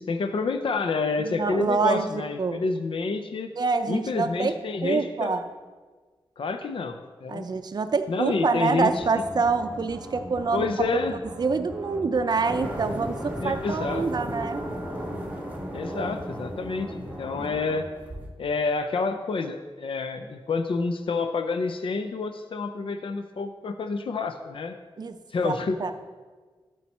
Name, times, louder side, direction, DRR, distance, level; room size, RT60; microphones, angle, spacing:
voice 1, 0.0-3.5 3.9-5.3 6.4-7.5 8.1-9.0 10.5-11.1 13.4-14.1 15.7-17.9 18.4-24.8 25.3-25.8, left 4 dB, 65° left, 8 dB, 0.5 m, -28 dB
voice 2, 1.2-2.1 2.4-2.6 3.6-4.5 4.8-5.4 7.3-10.7 11.1-14.7 15.9-16.1 17.4-17.5 25.0-25.2 25.4-25.9, right 4 dB, 45° right, 9 dB, 0.5 m, -26 dB
sound 1, 8.8-17.8, equal, 10° left, 1.6 m, -40 dB
sound 2, 12.5-18.3, equal, 15° right, 1.4 m, -36 dB
12.0 x 4.7 x 4.2 m, 1.4 s
wide cardioid pair, 110°, 10 cm